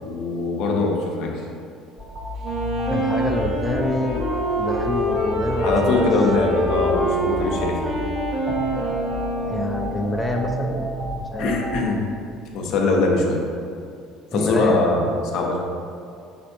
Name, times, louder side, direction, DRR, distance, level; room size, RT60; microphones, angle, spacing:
voice 1, 0.0-1.4 5.6-7.8 11.4-12.0 12.5-13.4 14.3-15.6, left 3 dB, 65° left, 0 dB, 0.7 m, -22 dB
sound 1, 2.0-11.9, equal, 40° right, 1.4 m, -31 dB
Wind instrument woodwind instrument, 2.4-10.1, right 1 dB, 55° right, 1.2 m, -26 dB
voice 2, 2.9-4.2 4.6-6.1 9.5-10.8 11.3-11.5 14.3-14.8, left 2 dB, 10° left, 1 dB, 0.5 m, -26 dB
4.2 x 4.2 x 2.6 m, 2.3 s
supercardioid pair, 85°, 0 cm